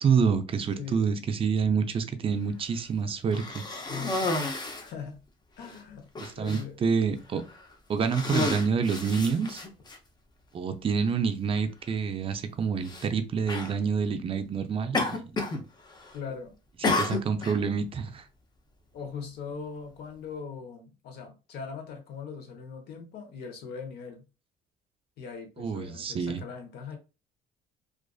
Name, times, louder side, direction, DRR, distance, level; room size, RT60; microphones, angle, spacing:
voice 1, 0.0-3.6 6.4-7.4 7.9-9.6 10.5-15.3 16.8-18.2 25.6-26.4, right 6 dB, 35° right, 0.4 m, -27 dB
voice 2, 0.8-1.2 3.9-4.3 4.8-5.2 5.6-6.0 6.4-6.8 16.1-16.6 18.9-24.2 25.2-27.0, left 6 dB, 75° left, 0.8 m, -40 dB
Cough, 3.3-4.9 5.7-5.8 6.1-6.6 7.4-7.6 8.0-10.0 10.9-11.0 12.8-13.1 13.5-13.7 14.9-15.6 15.9-16.3 16.8-17.6, left 2 dB, 25° left, 0.6 m, -31 dB
2.4 x 2.4 x 2.3 m
cardioid pair, 110°, 17 cm